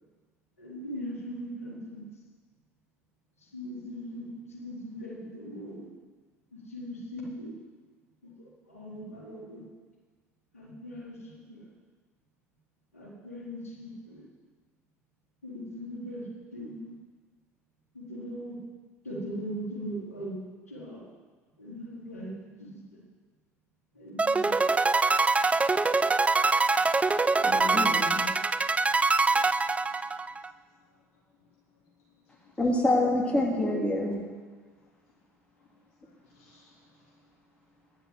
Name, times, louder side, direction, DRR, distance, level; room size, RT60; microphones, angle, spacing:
voice 1, 0.6-2.1 3.4-5.9 6.5-7.6 8.2-8.3 8.6-9.7 10.5-11.6 12.9-14.3 15.4-17.0 17.9-18.6 19.0-20.4 20.7-21.0 21.6-23.0 23.9-24.5, equal, 85° left, -7 dB, 4.0 m, -40 dB
sound 1, 24.2-30.5, right 3 dB, 15° right, 0.5 m, -24 dB
voice 2, 26.3-32.6 34.7-38.1, left 3 dB, 65° left, -7 dB, 4.9 m, -65 dB
voice 3, 27.4-28.3 32.6-34.2, left 1 dB, 15° left, -2 dB, 2.8 m, -26 dB
11.0 x 7.3 x 9.0 m, 1.4 s
figure-of-eight pair, 65°, 8 cm